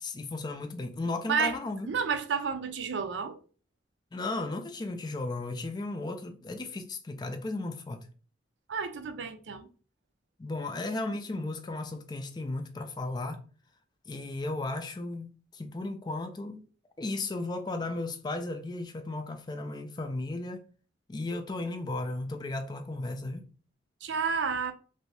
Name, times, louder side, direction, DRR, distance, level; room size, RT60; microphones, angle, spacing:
voice 1, 0.0-1.9 4.1-8.1 10.4-13.4 14.1-16.6 17.0-20.6 21.1-23.5, left 2 dB, 25° left, 0.3 m, -35 dB
voice 2, 1.9-3.4 8.7-9.7 24.0-24.7, right 5 dB, 75° right, 0.4 m, -30 dB
2.7 x 2.6 x 3.2 m
head